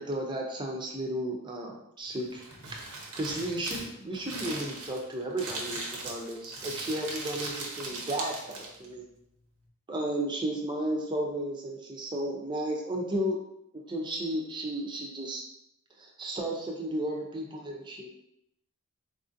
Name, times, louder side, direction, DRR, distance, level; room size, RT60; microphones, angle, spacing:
voice 1, 0.0-2.4 3.1-9.0 9.9-13.4 13.7-15.4 16.0-18.1, right 1 dB, 20° right, 0 dB, 0.5 m, -33 dB
Crumpling crinkling, 2.1-8.9, right 2 dB, 90° right, 0.8 m, -39 dB
4.1 x 2.5 x 2.6 m, 0.77 s
head